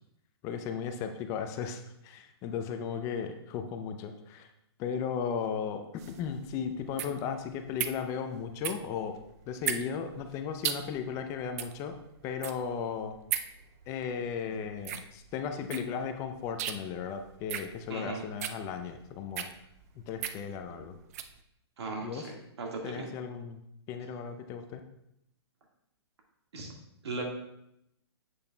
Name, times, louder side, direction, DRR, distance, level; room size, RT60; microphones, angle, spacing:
voice 1, 0.4-4.5 4.8-9.2 9.5-11.9 12.2-13.2 13.9-19.5 20.0-21.0 22.0-22.3 22.8-23.6 23.9-24.8, left 7 dB, 20° left, 7 dB, 0.4 m, -36 dB
sound 1, 6.0-21.4, right 10 dB, 35° right, 0.4 m, -38 dB
voice 2, 17.9-18.3 21.8-23.1 26.5-26.7 27.0-27.2, right 3 dB, 70° right, 1 dB, 1.7 m, -38 dB
7.8 x 6.8 x 2.2 m, 0.81 s
hypercardioid pair, 145°, 14 cm